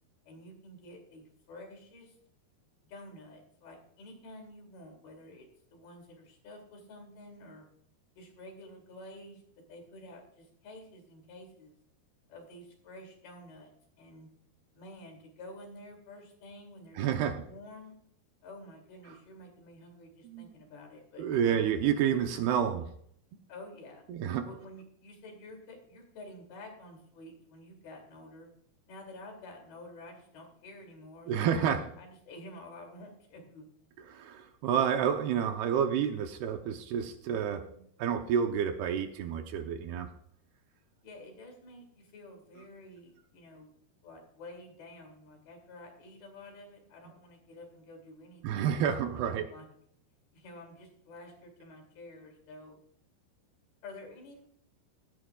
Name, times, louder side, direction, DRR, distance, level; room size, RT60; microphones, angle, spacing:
voice 1, 0.2-2.2 2.8-7.7 8.2-9.4 9.7-11.8 12.3-14.3 14.7-17.9 18.4-21.6 23.5-24.0 24.4-28.5 28.9-33.7 41.0-43.7 44.0-48.8 49.1-49.7 50.3-52.8 53.8-54.4, left 1 dB, 70° left, 2 dB, 4.5 m, -50 dB
voice 2, 17.0-17.4 20.3-20.5 21.2-22.9 24.1-24.5 31.3-31.8 34.1-40.1 48.4-49.5, right 8 dB, 80° right, 6 dB, 2.7 m, -29 dB
16.5 x 14.0 x 2.4 m, 0.68 s
omnidirectional pair, 4.6 m